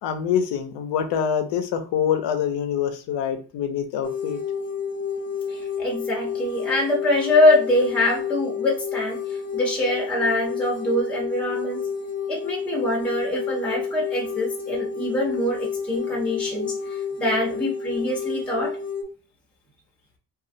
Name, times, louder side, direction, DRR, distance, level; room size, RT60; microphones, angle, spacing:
voice 1, 0.0-4.4, left 8 dB, 80° left, 8 dB, 0.7 m, -25 dB
sound 1, 4.0-19.0, left 6 dB, 20° left, 0.4 m, -30 dB
voice 2, 5.5-9.2 9.5-11.8 12.3-16.7 17.2-18.7, left 1 dB, 5° left, -3 dB, 0.8 m, -24 dB
2.7 x 2.4 x 2.6 m, 0.36 s
cardioid pair, 110°, 42 cm